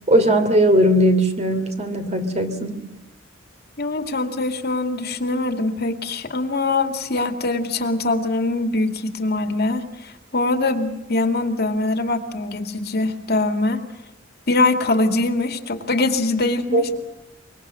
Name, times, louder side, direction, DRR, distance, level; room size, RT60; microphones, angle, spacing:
voice 1, 0.1-2.8 16.7-16.8, equal, 35° right, 7 dB, 3.0 m, -18 dB
voice 2, 3.8-13.8 14.5-16.9, left 2 dB, 55° left, 6 dB, 2.4 m, -23 dB
25.5 x 23.5 x 7.7 m, 0.93 s
head